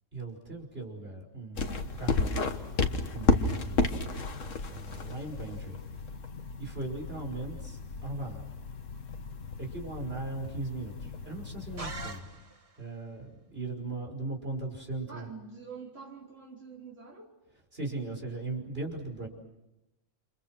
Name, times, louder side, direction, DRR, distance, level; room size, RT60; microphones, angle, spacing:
voice 1, 0.1-2.4 3.1-3.9 4.7-5.8 6.6-8.4 9.6-12.3 12.8-15.3 17.7-19.3, right 3 dB, 50° right, 0 dB, 5.9 m, -38 dB
sound 1, 1.6-12.2, left 3 dB, 75° left, 1.9 m, -33 dB
voice 2, 3.4-3.8 15.1-17.3, right 5 dB, 70° right, -4 dB, 5.0 m, -46 dB
sound 2, 11.8-12.9, right 3 dB, 30° right, 1.4 m, -42 dB
29.5 x 27.5 x 6.3 m, 0.93 s
omnidirectional pair, 1.3 m